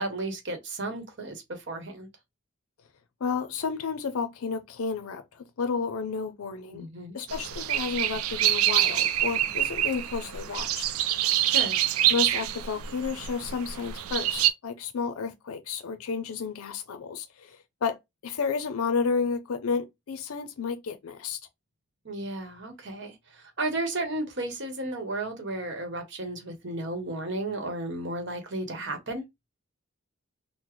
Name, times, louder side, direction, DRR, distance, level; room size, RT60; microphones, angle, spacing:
voice 1, 0.0-2.1 6.7-7.2 11.5-11.8 22.0-29.2, right 2 dB, 55° right, 0.9 m, -33 dB
voice 2, 3.2-6.9 7.1-10.9 11.2-11.3 12.1-18.0 18.2-21.4, left 5 dB, 80° left, 0.5 m, -31 dB
sound 1, 7.3-14.5, right 12 dB, 80° right, 0.3 m, -26 dB
3.8 x 2.0 x 3.0 m
head